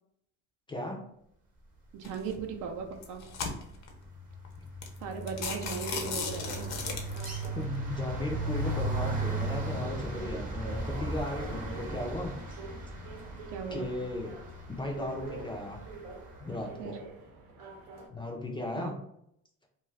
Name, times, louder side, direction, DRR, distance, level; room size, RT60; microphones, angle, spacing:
voice 1, 0.7-1.0 4.6-4.7 7.5-12.3 13.7-14.4 14.7-15.8 16.4-16.9 18.1-19.0, left 2 dB, 15° left, 0 dB, 0.4 m, -36 dB
voice 2, 1.9-3.2 5.0-6.8 13.5-13.9 16.8-17.0 18.8-18.9, right 6 dB, 65° right, 5 dB, 0.5 m, -38 dB
sound 1, 2.0-2.3 2.9-3.9 4.4-4.5 4.8-5.0 5.3-7.5, left 5 dB, 55° left, 0.6 m, -36 dB
sound 2, 2.6-2.9 3.2-16.3, right 2 dB, 25° right, 0.7 m, -37 dB
sound 3, 5.0-18.1, right 3 dB, 90° right, 0.8 m, -47 dB
2.4 x 2.3 x 3.2 m, 0.72 s
cardioid pair, 130°, 33 cm